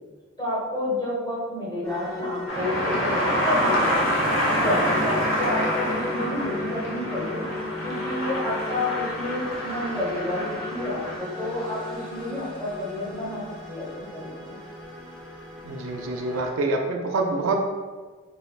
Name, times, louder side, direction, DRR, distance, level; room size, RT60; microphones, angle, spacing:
voice 1, 0.4-4.0 4.4-7.4 7.8-13.4 13.7-14.6, left 1 dB, 20° left, -8 dB, 1.1 m, -30 dB
sound 1, 1.8-16.5, left 2 dB, 5° left, 0.6 m, -36 dB
sound 2, 2.5-11.2, equal, 60° left, 0.8 m, -27 dB
voice 2, 15.6-17.5, right 3 dB, 70° right, 3 dB, 0.4 m, -26 dB
3.3 x 3.2 x 2.3 m, 1.4 s
head